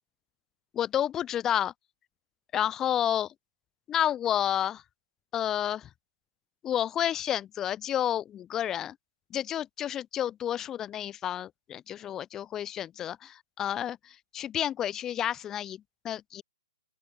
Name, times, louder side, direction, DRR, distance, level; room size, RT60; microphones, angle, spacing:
voice 1, 0.7-1.7 2.5-3.3 3.9-4.8 5.3-5.9 6.6-9.0 9.3-16.4, left 10 dB, 15° left, 0.7 m, -30 dB
open air
figure-of-eight pair, 125°, 3 cm